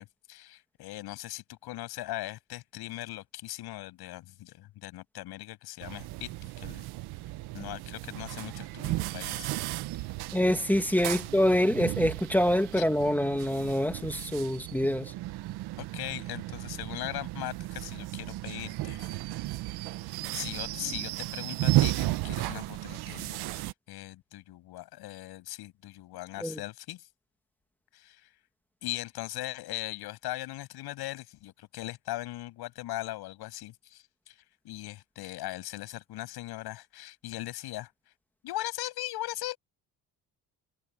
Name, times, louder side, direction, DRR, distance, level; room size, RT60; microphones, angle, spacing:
voice 1, 0.0-6.9 7.5-9.5 10.0-10.1 11.1-11.3 12.8-12.9 15.8-19.1 19.9-20.0 20.3-27.1 27.9-28.3 28.8-37.9 38.4-39.6, left 16 dB, 80° left, 7.0 m, -39 dB
sound 1, 5.8-23.7, right 17 dB, 80° right, 1.3 m, -34 dB
voice 2, 10.3-15.1 26.4-26.6, left 1 dB, 5° left, 2.4 m, -26 dB
cardioid pair, 85°, 38 cm